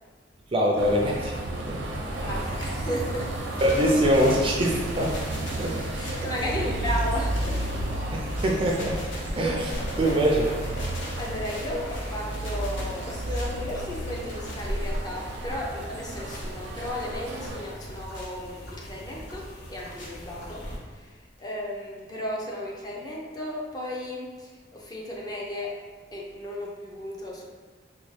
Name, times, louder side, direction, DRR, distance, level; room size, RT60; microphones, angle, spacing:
voice 1, 0.5-1.8 3.6-5.1 5.6-5.8 8.1-9.0 9.3-10.5, equal, 30° right, -1 dB, 0.4 m, -24 dB
sound 1, 0.8-17.6, right 1 dB, 80° right, 0.5 m, -32 dB
voice 2, 2.2-3.3 5.9-7.7 11.2-20.6 20.9-25.8 26.1-27.4, left 1 dB, 20° left, -3 dB, 0.5 m, -34 dB
sound 2, 2.4-20.8, equal, 65° left, 0.7 m, -42 dB
sound 3, 3.3-8.0 8.3-17.0 17.4-18.3 18.8-18.9 19.3-20.1 20.3-21.1 21.4-21.5 21.7-21.8 22.0-22.1, left 1 dB, 90° left, 0.9 m, -41 dB
4.0 x 2.1 x 3.1 m, 1.4 s
head